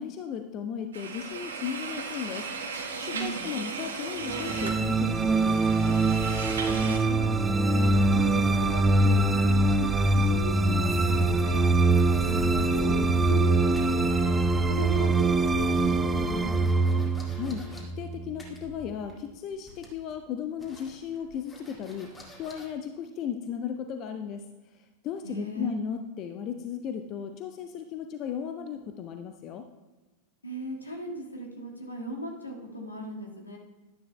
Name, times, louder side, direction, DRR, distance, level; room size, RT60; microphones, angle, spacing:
voice 1, 0.0-2.5 3.0-6.0 17.3-24.4 24.7-29.7, left 8 dB, 35° left, 7 dB, 0.5 m, -36 dB
sound 1, 0.9-7.0, right 4 dB, 65° right, 1.2 m, -36 dB
voice 2, 3.1-3.5 6.7-11.7 12.2-14.4 14.7-17.1 25.2-25.8 30.4-33.6, equal, 80° left, 0 dB, 1.7 m, -38 dB
sound 2, 4.3-18.6, right 2 dB, 10° right, 0.4 m, -24 dB
sound 3, 10.4-13.5 13.8-14.6 14.9-17.8 18.4-19.3 19.5-20.1 20.6-22.7, left 2 dB, 15° left, 2.1 m, -42 dB
12.0 x 10.0 x 2.2 m, 1.2 s
figure-of-eight pair, 90°, 0 cm